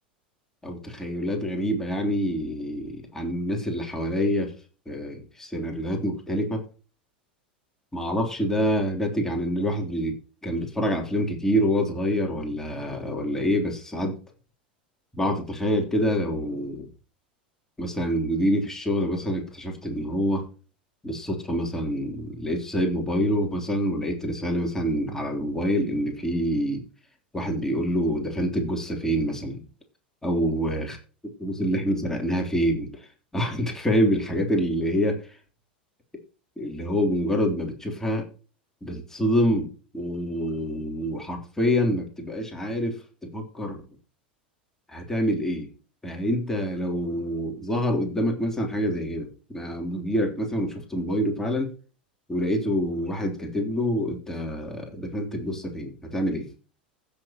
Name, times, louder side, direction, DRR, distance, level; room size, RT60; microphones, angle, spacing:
voice 1, 0.6-4.5 4.9-6.6 7.9-10.2 10.4-14.2 15.1-16.9 17.8-20.4 21.0-26.8 27.3-29.6 30.2-31.0 31.4-32.9 33.3-35.2 36.6-38.3 38.8-43.8 44.9-45.7 46.0-51.7 52.3-56.5, equal, 10° left, 1 dB, 3.2 m, -26 dB
16.0 x 7.0 x 2.9 m, 0.36 s
figure-of-eight pair, 85°, 5 cm